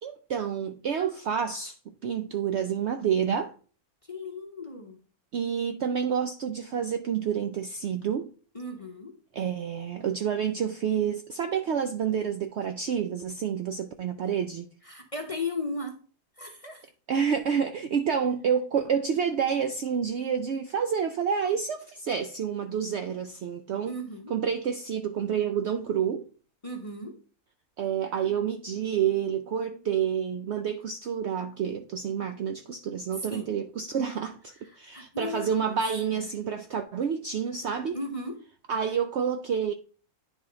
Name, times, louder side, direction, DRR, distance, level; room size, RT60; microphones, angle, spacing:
voice 1, 0.0-3.5 5.3-8.3 9.3-14.7 17.1-24.0 24.3-26.3 27.8-38.0 38.7-39.7, right 7 dB, 70° right, 0.6 m, -29 dB
voice 2, 4.1-5.0 8.5-9.1 14.8-15.9 16.4-16.9 23.9-24.3 26.6-27.2 33.3-33.5 34.9-35.7 37.9-38.4, left 2 dB, 30° left, 0.7 m, -36 dB
10.0 x 3.5 x 3.8 m
omnidirectional pair, 1.6 m